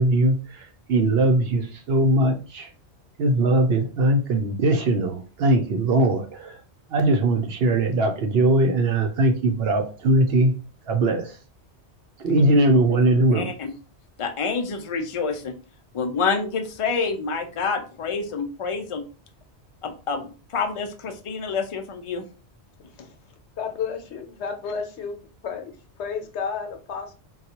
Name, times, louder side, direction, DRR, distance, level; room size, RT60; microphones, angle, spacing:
voice 1, 0.0-2.7 3.2-6.6 6.9-10.5 10.9-11.4 12.2-13.5, right 2 dB, 65° right, 5 dB, 0.8 m, -20 dB
voice 2, 13.3-13.7 14.2-15.5 15.9-19.0 19.8-22.2, left 5 dB, 45° left, 5 dB, 0.4 m, -27 dB
voice 3, 23.6-25.2 25.4-27.1, left 6 dB, 80° left, 5 dB, 1.0 m, -32 dB
3.9 x 2.3 x 2.8 m, 0.35 s
omnidirectional pair, 1.2 m